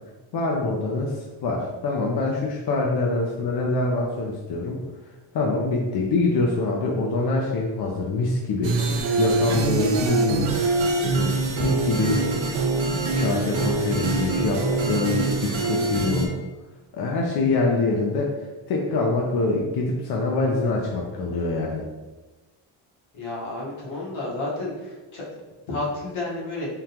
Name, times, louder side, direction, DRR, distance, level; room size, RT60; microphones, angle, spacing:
voice 1, 0.3-4.8 5.3-10.5 11.1-12.2 13.0-16.3 16.9-18.3 18.7-21.8, left 3 dB, 50° left, -1 dB, 0.5 m, -25 dB
sound 1, 8.6-16.3, right 3 dB, 70° right, 0.7 m, -24 dB
voice 2, 23.1-24.7 25.1-25.2 25.7-26.7, left 2 dB, 70° left, -5 dB, 1.4 m, -30 dB
3.6 x 2.3 x 2.8 m, 1.2 s
cardioid pair, 100°, 49 cm